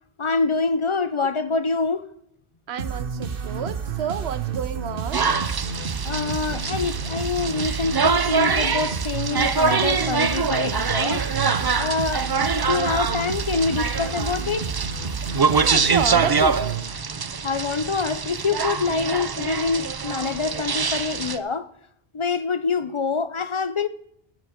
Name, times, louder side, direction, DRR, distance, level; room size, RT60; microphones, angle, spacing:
voice 1, 0.2-2.1 6.0-11.3 11.8-12.3 12.5-14.7 17.2-21.7 22.1-23.9, left 4 dB, 35° left, 0.5 m, -26 dB
voice 2, 2.7-5.3 15.5-16.8, right 8 dB, 90° right, 1.0 m, -30 dB
sound 1, 2.8-17.4, right 5 dB, 60° right, 1.1 m, -30 dB
sound 2, 5.1-21.4, right 5 dB, 40° right, 0.3 m, -24 dB
14.5 x 6.3 x 5.1 m
omnidirectional pair, 1.0 m